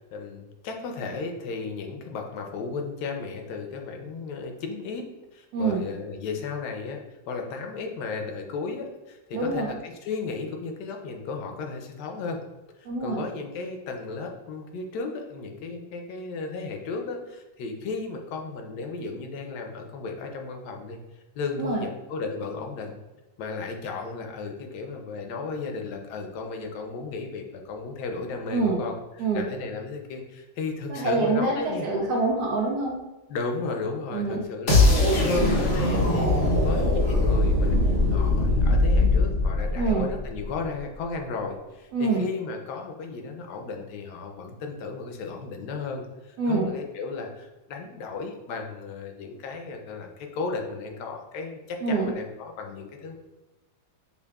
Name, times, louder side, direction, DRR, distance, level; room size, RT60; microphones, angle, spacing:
voice 1, 0.1-7.0 7.3-12.4 12.8-21.0 21.4-23.0 23.4-31.9 33.3-53.1, left 4 dB, 85° left, 3 dB, 1.2 m, -34 dB
voice 2, 9.3-9.8 12.9-13.2 21.6-21.8 28.5-28.8 29.2-29.4 30.9-33.0 34.1-34.4 39.8-40.1 41.9-42.2 46.4-46.7 51.8-52.1, right 3 dB, 75° right, -1 dB, 1.1 m, -25 dB
sound 1, 34.7-40.6, left 2 dB, 50° left, 0.7 m, -21 dB
5.4 x 2.3 x 2.3 m, 1.1 s
omnidirectional pair, 1.8 m